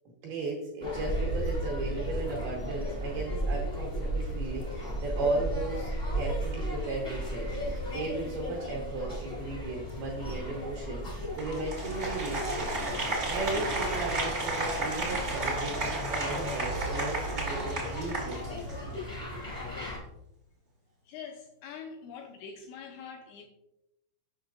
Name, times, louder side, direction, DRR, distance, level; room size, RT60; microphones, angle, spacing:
voice 1, 0.2-12.7 13.3-18.6, right 2 dB, 75° right, -2 dB, 2.3 m, -36 dB
sound 1, 0.8-20.0, right 1 dB, 35° left, 0.7 m, -35 dB
Applause, 11.4-18.9, right 2 dB, 60° right, 0.7 m, -33 dB
voice 2, 21.1-23.5, left 6 dB, 85° left, 3 dB, 2.6 m, -44 dB
7.8 x 6.2 x 2.5 m, 0.87 s
omnidirectional pair, 5.5 m